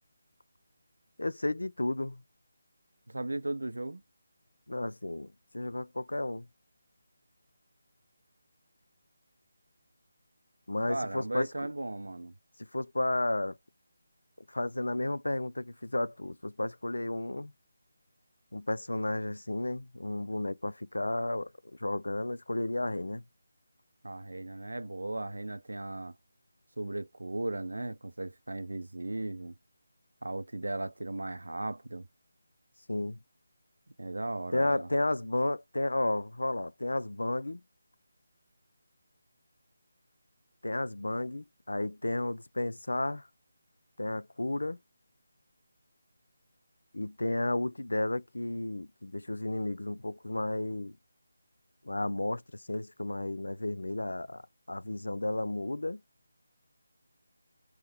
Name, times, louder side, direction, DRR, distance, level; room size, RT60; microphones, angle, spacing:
voice 1, 1.2-2.2 4.7-6.5 10.7-11.5 12.7-13.6 14.5-17.5 18.5-21.5 21.8-23.2 32.9-33.2 34.5-37.6 40.6-43.2 44.0-44.8 46.9-51.0 51.8-54.4 54.7-56.0, left 2 dB, 70° left, 0.3 m, -32 dB
voice 2, 3.1-4.0 10.9-12.3 24.0-26.2 26.8-29.5 30.2-32.1 34.0-34.9, right 2 dB, 70° right, 0.5 m, -36 dB
3.6 x 3.0 x 3.4 m
figure-of-eight pair, 155°, 0 cm